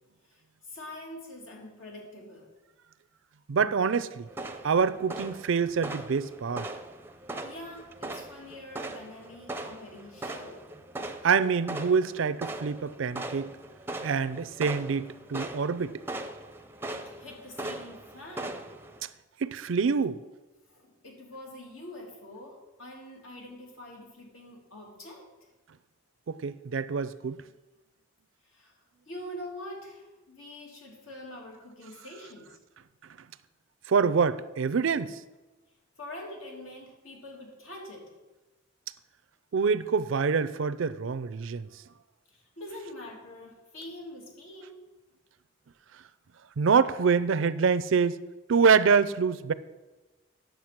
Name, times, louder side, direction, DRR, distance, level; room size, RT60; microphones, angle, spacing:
voice 1, 0.3-2.5 7.4-10.7 16.9-18.7 20.7-25.3 28.4-28.8 29.1-32.6 36.0-38.1 42.3-44.8, left 1 dB, 80° left, 2.7 m, -45 dB
voice 2, 3.5-4.3 4.6-6.7 11.2-13.5 14.0-16.0 19.0-19.1 19.4-20.2 26.3-27.4 33.9-35.2 39.5-41.7 46.6-48.2 48.5-49.5, right 5 dB, 70° right, 0.4 m, -26 dB
sound 1, 4.3-19.0, right 2 dB, 10° right, 0.5 m, -40 dB
9.5 x 6.8 x 5.9 m
head